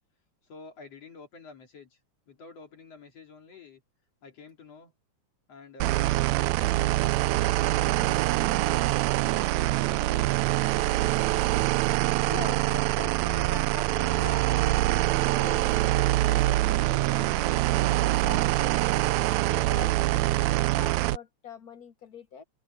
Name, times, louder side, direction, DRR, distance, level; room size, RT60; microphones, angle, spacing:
voice 1, 0.4-2.0 2.3-3.8 4.2-5.0 5.5-9.1 9.7-10.7 10.9-11.7, left 4 dB, 60° left, 3.7 m, -50 dB
sound 1, 5.8-21.2, right 17 dB, 80° right, 1.8 m, -24 dB
voice 2, 12.2-17.5 17.8-22.4, left 6 dB, 85° left, 0.8 m, -43 dB
omnidirectional pair, 3.3 m